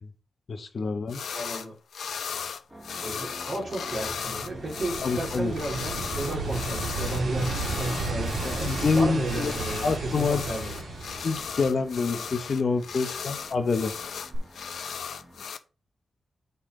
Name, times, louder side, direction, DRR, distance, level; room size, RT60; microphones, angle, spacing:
voice 1, 0.5-1.2 5.0-5.5 8.4-9.5 9.8-10.5 11.2-14.0, left 4 dB, 45° left, 1.0 m, -27 dB
sound 1, 1.1-1.7 1.9-15.6, left 6 dB, 80° left, 0.6 m, -36 dB
voice 2, 1.3-1.7 2.9-10.8, right 1 dB, 40° right, 3.2 m, -33 dB
sound 2, 2.7-15.5, right 1 dB, 15° right, 2.3 m, -48 dB
sound 3, 3.7-12.2 14.3-14.4, right 3 dB, 90° right, 2.0 m, -34 dB
8.2 x 4.2 x 3.8 m
wide cardioid pair, 155°, 0 cm